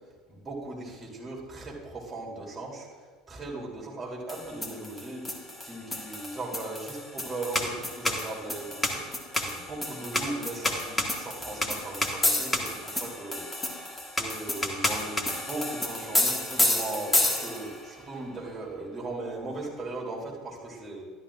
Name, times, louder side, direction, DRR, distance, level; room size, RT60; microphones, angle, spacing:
voice 1, 0.3-2.9 3.3-13.5 13.8-21.0, right 2 dB, 25° right, -3 dB, 3.2 m, -38 dB
sound 1, 4.3-17.8, left 1 dB, 15° left, 1.5 m, -30 dB
12.5 x 11.5 x 2.5 m, 1.5 s
hypercardioid pair, 70°, 0 cm